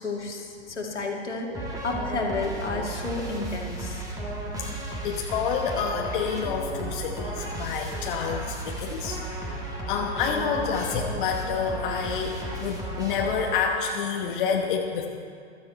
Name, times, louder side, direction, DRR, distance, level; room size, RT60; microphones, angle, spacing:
voice 1, 0.0-4.0, left 3 dB, 75° left, 0 dB, 2.3 m, -31 dB
sound 1, 1.5-13.9, right 2 dB, 10° right, 2.2 m, -34 dB
voice 2, 4.5-9.5 9.9-15.1, left 6 dB, 45° left, 1 dB, 1.2 m, -29 dB
15.5 x 13.0 x 4.2 m, 2.3 s
figure-of-eight pair, 105°, 35 cm